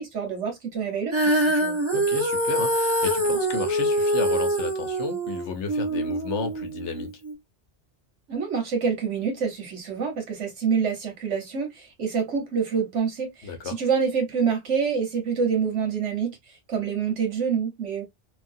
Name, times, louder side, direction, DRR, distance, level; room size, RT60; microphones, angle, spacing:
voice 1, 0.0-1.8 8.3-16.4 16.7-18.0, right 6 dB, 90° right, 1.5 m, -27 dB
Female singing, 1.1-7.3, right 1 dB, 25° right, 1.3 m, -24 dB
voice 2, 1.9-7.2 13.4-13.8, left 6 dB, 80° left, 1.1 m, -33 dB
3.2 x 2.4 x 2.6 m
omnidirectional pair, 1.2 m